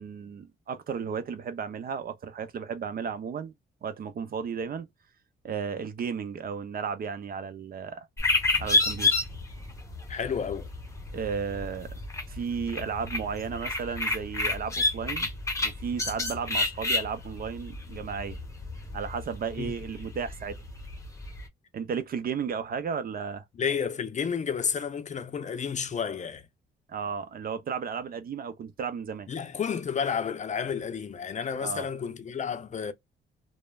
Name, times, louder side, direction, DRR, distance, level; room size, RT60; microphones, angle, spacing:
voice 1, 0.0-3.5 3.8-4.9 5.4-8.1 8.6-9.2 11.1-12.0 12.3-15.3 15.6-18.4 18.9-20.6 21.7-23.4 26.9-29.3 31.6-31.9, right 6 dB, 50° right, 0.6 m, -34 dB
sound 1, 8.2-21.5, left 3 dB, 15° left, 0.9 m, -31 dB
voice 2, 10.1-10.7 19.6-19.8 23.6-26.5 29.3-32.9, left 7 dB, 40° left, 0.5 m, -31 dB
3.1 x 2.1 x 2.2 m
cardioid pair, 90°, 20 cm